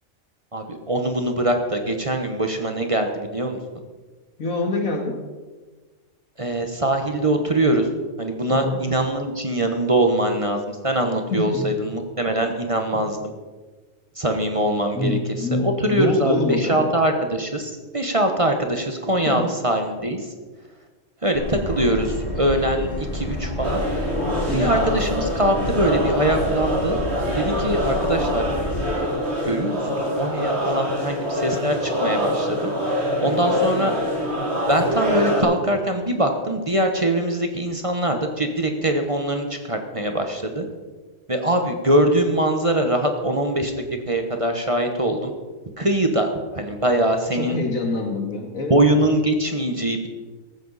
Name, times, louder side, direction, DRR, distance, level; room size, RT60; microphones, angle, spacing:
voice 1, 0.5-3.6 6.4-7.9 8.2-13.2 14.2-20.2 21.2-23.8 24.5-27.0 27.3-28.4 28.9-29.1 29.4-32.7 33.0-33.9 34.7-40.7 41.3-43.7 44.1-45.3 45.8-47.6 48.7-50.1, right 1 dB, 25° right, 5 dB, 1.2 m, -22 dB
voice 2, 4.4-5.2 8.5-8.8 11.3-11.7 14.9-16.9 19.3-19.5 24.5-24.7 47.3-48.8, left 2 dB, 90° left, 2 dB, 2.6 m, -25 dB
Subway metro underground, 21.3-28.8, left 1 dB, 40° left, 4.3 m, -30 dB
sound 1, 23.6-35.4, equal, 55° right, 3.3 m, -25 dB
15.0 x 14.0 x 4.2 m, 1.3 s
omnidirectional pair, 1.4 m